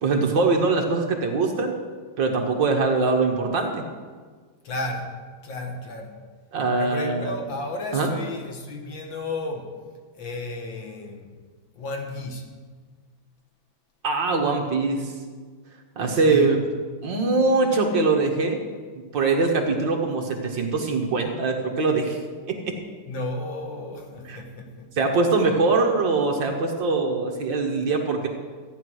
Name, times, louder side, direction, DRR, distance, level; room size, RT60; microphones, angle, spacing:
voice 1, 0.0-1.7 2.2-3.9 6.5-7.2 7.9-8.1 14.0-15.1 16.0-16.6 17.0-18.6 19.1-22.2 22.5-22.7 24.3-24.4 25.0-28.3, right 3 dB, 60° right, 2 dB, 2.0 m, -22 dB
voice 2, 4.6-5.2 5.4-6.2 6.8-9.8 10.1-11.3 11.8-12.5 16.2-16.5 23.1-24.9, left 2 dB, 60° left, 3 dB, 2.0 m, -33 dB
14.0 x 9.5 x 6.3 m, 1.5 s
omnidirectional pair, 2.4 m